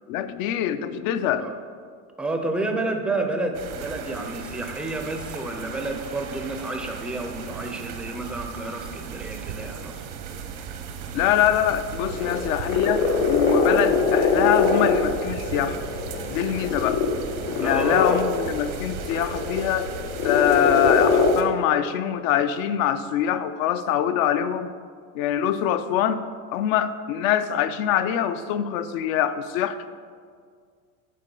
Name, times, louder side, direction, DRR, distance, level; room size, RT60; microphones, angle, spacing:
voice 1, 0.1-1.5 11.1-15.8 16.3-17.0 17.6-19.9 20.2-24.7 25.1-26.2 26.5-29.9, left 10 dB, 70° left, 12 dB, 0.6 m, -24 dB
voice 2, 2.2-10.1 12.2-12.5 17.6-18.3, right 2 dB, 5° right, 3 dB, 0.4 m, -30 dB
sound 1, 3.5-21.4, right 7 dB, 85° right, 0.9 m, -37 dB
sound 2, 12.1-21.3, left 4 dB, 90° left, 1.1 m, -23 dB
8.7 x 3.8 x 5.3 m, 2.1 s
supercardioid pair, 125°, 43 cm